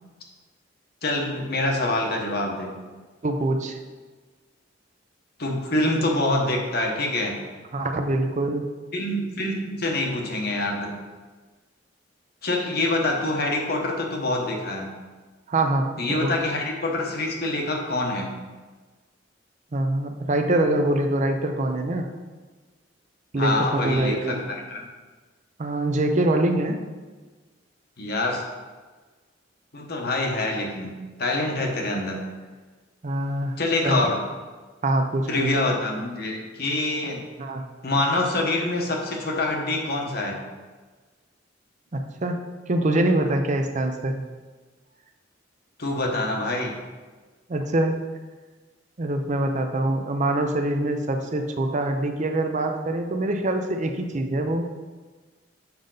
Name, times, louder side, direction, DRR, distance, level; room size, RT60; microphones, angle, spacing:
voice 1, 1.0-2.7 5.4-7.4 8.9-10.9 12.4-14.9 16.0-18.3 23.4-24.9 28.0-28.4 29.7-32.2 33.6-34.2 35.3-37.2 37.8-40.4 45.8-46.8, left 2 dB, 55° left, 0 dB, 1.2 m, -25 dB
voice 2, 3.2-3.8 7.7-8.6 15.5-16.3 19.7-22.1 23.3-24.4 25.6-26.8 33.0-33.6 33.8-34.0 34.8-35.5 37.0-37.1 37.4-37.6 41.9-44.2 47.5-48.0 49.0-54.7, right 1 dB, 40° right, 5 dB, 0.6 m, -24 dB
7.1 x 5.2 x 3.9 m, 1.3 s
head